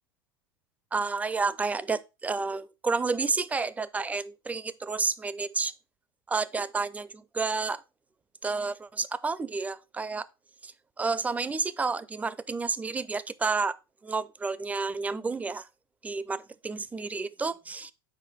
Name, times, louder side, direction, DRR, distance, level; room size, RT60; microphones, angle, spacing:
voice 1, 0.9-5.7 6.3-7.8 8.4-10.2 10.6-10.7 11.0-13.7 14.0-15.7 16.0-17.9, right 4 dB, 10° right, 0.4 m, -30 dB
6.3 x 4.8 x 4.3 m
figure-of-eight pair, 90°, 13 cm